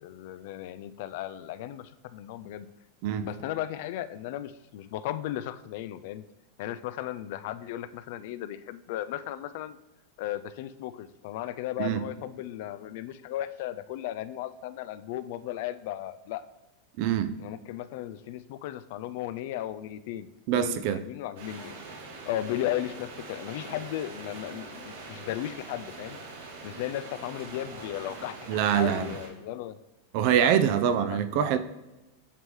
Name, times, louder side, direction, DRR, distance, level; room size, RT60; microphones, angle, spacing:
voice 1, 0.0-2.7 3.2-6.2 6.6-9.8 10.2-16.4 17.4-21.8 22.3-26.2 26.6-29.8 30.4-30.5 30.8-31.2, left 13 dB, 60° left, 14 dB, 0.3 m, -36 dB
voice 2, 17.0-17.3 20.5-21.0 28.5-29.1 30.1-31.6, right 9 dB, 50° right, 11 dB, 0.4 m, -24 dB
sound 1, 21.4-29.3, right 3 dB, 70° right, 1.5 m, -43 dB
8.2 x 3.7 x 3.1 m, 1.0 s
supercardioid pair, 150°, 0 cm